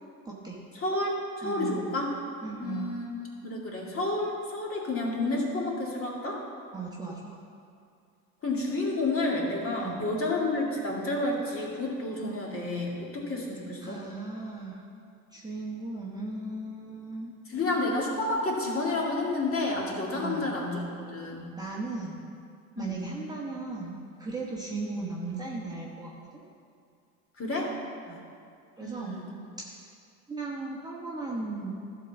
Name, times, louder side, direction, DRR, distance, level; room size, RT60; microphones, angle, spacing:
voice 1, 0.2-0.6 1.4-1.8 2.4-2.9 6.7-7.4 9.8-10.1 13.8-14.8 15.3-17.3 20.1-20.6 21.6-22.2 22.8-26.4 28.1-28.2 28.8-29.2 30.3-31.8, right 3 dB, 10° right, -5 dB, 1.2 m, -37 dB
voice 2, 0.8-2.1 2.6-3.1 3.4-6.4 8.4-14.0 17.5-20.8 21.1-21.5 22.8-23.1 27.4-27.7 28.8-29.3, left 2 dB, 30° left, -2 dB, 2.2 m, -30 dB
12.0 x 4.0 x 7.1 m, 2.4 s
hypercardioid pair, 85°, 44 cm